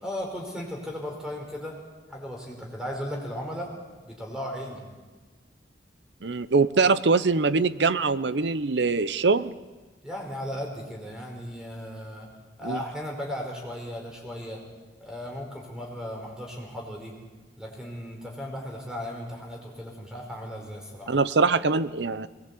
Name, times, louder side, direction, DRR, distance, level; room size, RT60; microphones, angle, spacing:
voice 1, 0.0-1.8 2.1-3.7 4.0-4.8 10.0-12.3 12.6-14.6 15.0-17.1 17.6-21.2, equal, 5° right, 0 dB, 5.0 m, -36 dB
voice 2, 6.2-9.6 12.6-12.8 21.1-22.3, right 4 dB, 75° right, 15 dB, 0.8 m, -23 dB
22.0 x 20.0 x 8.5 m, 1.3 s
head